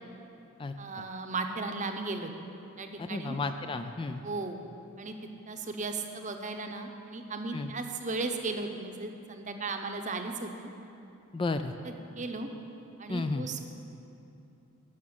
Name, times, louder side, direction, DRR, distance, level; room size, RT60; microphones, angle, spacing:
voice 1, 0.8-2.3 2.8-3.4 4.2-4.6 5.0-5.1 5.5-10.7 11.8-12.5 13.0-13.6, right 3 dB, 35° right, 5 dB, 0.8 m, -36 dB
voice 2, 3.0-4.2 7.5-7.7 11.3-11.7 13.1-13.5, left 3 dB, 25° left, 8 dB, 0.3 m, -32 dB
12.5 x 6.1 x 8.7 m, 2.8 s
head